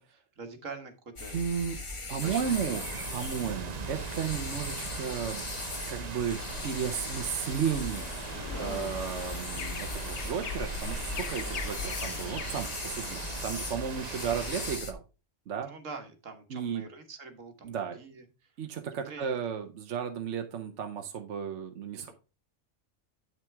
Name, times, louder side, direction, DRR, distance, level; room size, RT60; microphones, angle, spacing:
voice 1, 0.0-1.4 2.2-2.7 4.2-4.4 8.5-8.8 13.1-13.3 15.6-18.5 19.1-19.4 21.9-22.1, right 4 dB, 85° right, 6 dB, 1.8 m, -45 dB
sound 1, 1.2-14.9, left 2 dB, 25° left, 1.0 m, -39 dB
voice 2, 1.3-1.8 2.1-2.8 3.1-5.4 5.9-8.2 8.6-15.0 15.5-15.7 16.5-16.9 17.6-18.0 18.6-22.1, right 7 dB, 70° right, 5 dB, 1.2 m, -34 dB
sound 2, 2.2-14.8, right 5 dB, 40° right, 0.7 m, -41 dB
sound 3, 6.3-12.6, left 6 dB, 80° left, 1.2 m, -41 dB
9.2 x 6.0 x 3.4 m, 0.31 s
omnidirectional pair, 1.3 m